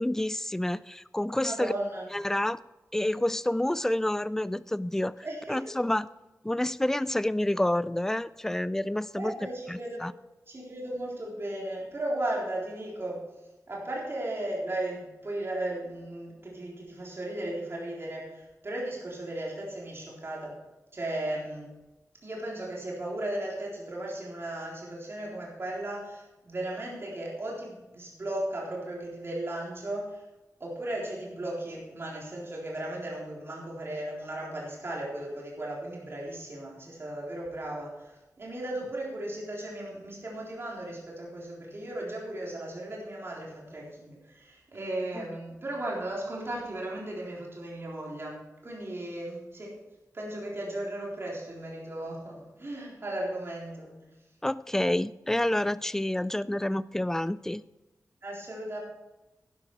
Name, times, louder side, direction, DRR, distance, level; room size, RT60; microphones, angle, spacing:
voice 1, 0.0-1.7 2.1-2.6 2.9-5.1 5.5-6.1 6.4-9.3 9.7-10.1 45.2-45.3 54.4-57.6, left 1 dB, 5° left, 18 dB, 0.3 m, -28 dB
voice 2, 1.4-2.1 5.2-5.7 9.1-10.0 10.5-13.3 13.7-20.6 20.9-21.7 22.2-30.2 30.6-49.8 50.1-54.1 58.2-58.8, right 1 dB, 40° right, -3 dB, 3.9 m, -36 dB
11.5 x 11.0 x 4.8 m, 1.0 s
wide cardioid pair, 130°, 6 cm